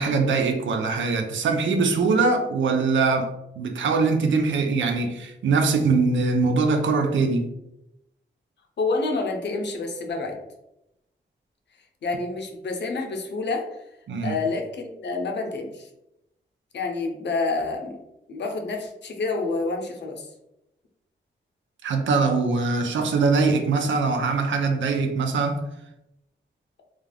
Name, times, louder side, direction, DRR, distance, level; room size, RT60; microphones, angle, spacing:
voice 1, 0.0-7.5 14.1-14.3 21.8-25.7, right 4 dB, 80° right, 0.4 m, -22 dB
voice 2, 8.8-10.4 12.0-13.8 14.2-15.9 16.7-18.0 18.3-20.3, left 3 dB, 65° left, 0.6 m, -28 dB
2.4 x 2.2 x 3.2 m
cardioid pair, 60°, 20 cm